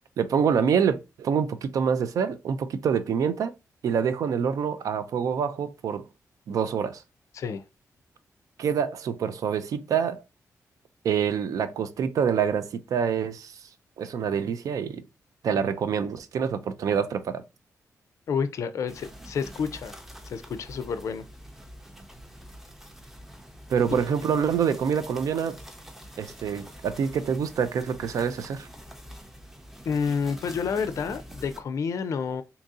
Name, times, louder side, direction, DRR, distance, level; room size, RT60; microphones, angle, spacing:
voice 1, 0.2-3.5 3.8-6.0 6.5-7.0 8.6-10.2 11.0-13.6 14.0-15.0 15.4-17.4 23.7-25.6 26.2-28.7, right 7 dB, 75° right, 0.4 m, -26 dB
voice 2, 18.3-19.9 20.3-21.2 29.9-32.4, left 6 dB, 60° left, 0.4 m, -29 dB
sound 1, 18.9-31.6, equal, 5° right, 0.6 m, -45 dB
2.8 x 2.6 x 3.6 m
wide cardioid pair, 125°, 6 cm